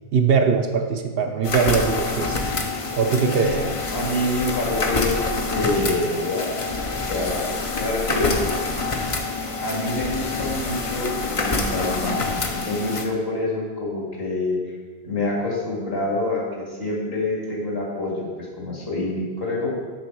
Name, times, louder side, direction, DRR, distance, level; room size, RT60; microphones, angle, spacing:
voice 1, 0.1-2.4 3.0-3.5, right 5 dB, 65° right, 5 dB, 0.8 m, -21 dB
sound 1, 1.4-13.0, left 3 dB, 35° left, 0.7 m, -26 dB
voice 2, 3.2-3.6 3.9-5.1 5.5-7.5 7.8-8.4 9.6-14.6 15.0-18.3 18.6-19.7, left 2 dB, 60° left, -4 dB, 2.4 m, -26 dB
7.4 x 6.3 x 4.6 m, 1.5 s
omnidirectional pair, 1.1 m